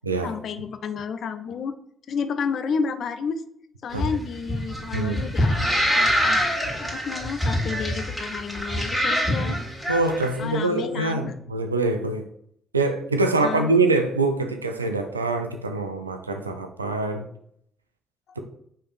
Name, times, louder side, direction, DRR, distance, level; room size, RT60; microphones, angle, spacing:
voice 1, 0.2-1.8 2.1-3.4 3.8-5.6 6.0-6.4 6.8-9.6 10.4-11.3 13.4-13.7, left 6 dB, 55° left, 9 dB, 0.3 m, -31 dB
sound 1, 3.9-10.2, equal, ahead, 1.6 m, -25 dB
voice 2, 9.9-12.3 12.7-17.3, right 3 dB, 85° right, 6 dB, 0.3 m, -24 dB
4.8 x 3.1 x 2.5 m, 0.69 s
figure-of-eight pair, 40°, 0 cm